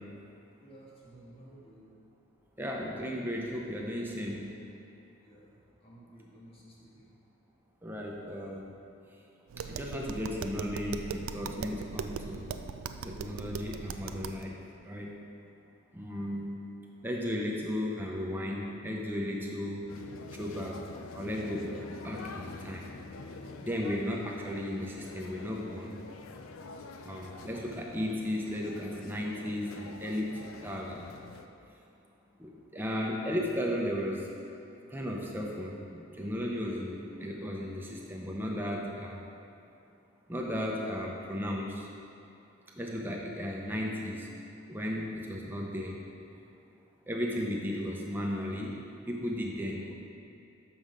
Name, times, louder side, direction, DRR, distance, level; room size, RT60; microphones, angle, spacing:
voice 1, 0.6-1.9 5.2-7.1 15.9-16.1 48.9-49.0, right 1 dB, 25° left, -6 dB, 1.4 m, -54 dB
voice 2, 2.6-4.4 7.8-8.7 9.6-12.5 13.0-14.6 14.8-15.1 15.9-16.5 17.0-19.8 20.3-20.8 21.1-21.7 22.0-22.9 23.6-26.0 27.0-31.1 32.4-34.3 34.9-39.3 40.3-41.9 42.8-44.3 44.7-46.0 47.1-48.8 49.1-49.9, equal, 10° right, -2 dB, 0.7 m, -35 dB
Tap, 9.5-14.4, right 6 dB, 80° right, 0.3 m, -39 dB
sound 1, 19.9-31.5, left 3 dB, 75° left, 0.4 m, -46 dB
6.8 x 5.8 x 5.0 m, 2.7 s
head